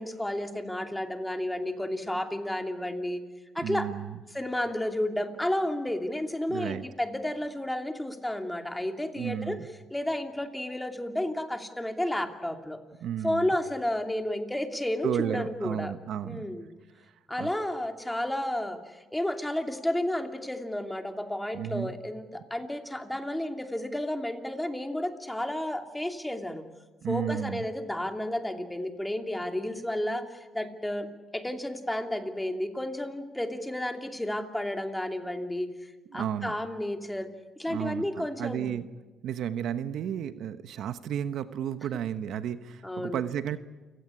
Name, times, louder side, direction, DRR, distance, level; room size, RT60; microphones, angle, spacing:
voice 1, 0.0-3.2 3.5-3.9 4.3-9.6 9.9-12.8 13.2-15.9 16.2-16.7 17.3-26.6 27.1-35.7 36.1-37.3 37.6-38.8 42.8-43.2, left 1 dB, 5° left, 5 dB, 2.7 m, -32 dB
voice 2, 3.6-4.1 6.5-6.8 9.2-9.6 13.0-13.5 15.0-16.5 17.4-17.5 21.5-21.9 27.0-27.6 36.1-36.5 37.7-38.8 39.2-43.6, right 9 dB, 75° right, 11 dB, 1.1 m, -33 dB
29.5 x 17.0 x 9.8 m, 1.2 s
cardioid pair, 90°, 0 cm